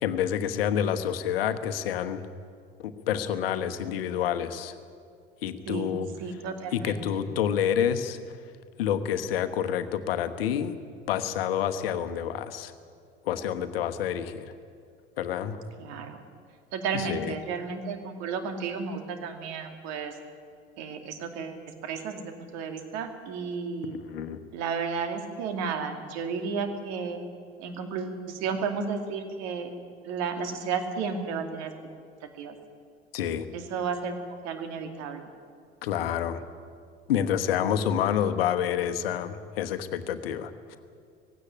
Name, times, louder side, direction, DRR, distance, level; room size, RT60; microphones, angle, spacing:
voice 1, 0.0-2.2 2.8-4.7 5.4-6.1 6.7-8.2 8.8-10.7 11.1-12.7 13.2-14.5 15.2-15.6 16.9-17.3 23.8-24.4 33.1-33.5 35.8-36.4 37.1-40.5, left 9 dB, 65° left, 10 dB, 1.2 m, -28 dB
voice 2, 5.7-7.2 15.8-16.2 16.7-20.2 20.8-24.0 24.5-27.2 27.6-29.7 30.0-31.7 32.4-32.5 33.5-34.1 34.4-35.3, right 5 dB, 55° right, 6 dB, 2.5 m, -33 dB
18.5 x 16.5 x 9.8 m, 2.2 s
figure-of-eight pair, 65°, 32 cm